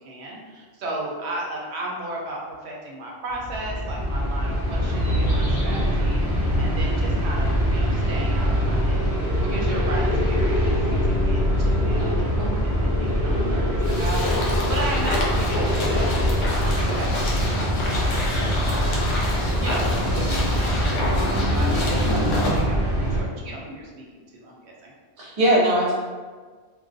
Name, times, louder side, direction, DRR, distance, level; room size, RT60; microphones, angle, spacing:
voice 1, 0.0-18.2 18.5-24.9, right 1 dB, 70° right, -2 dB, 0.8 m, -35 dB
sound 1, 3.3-23.2, equal, 45° left, 0.4 m, -23 dB
sound 2, 13.8-22.6, left 2 dB, 80° left, 0.9 m, -29 dB
voice 2, 22.2-22.6 25.2-25.9, right 1 dB, 40° right, -7 dB, 0.5 m, -21 dB
2.4 x 2.2 x 2.4 m, 1.5 s
omnidirectional pair, 1.2 m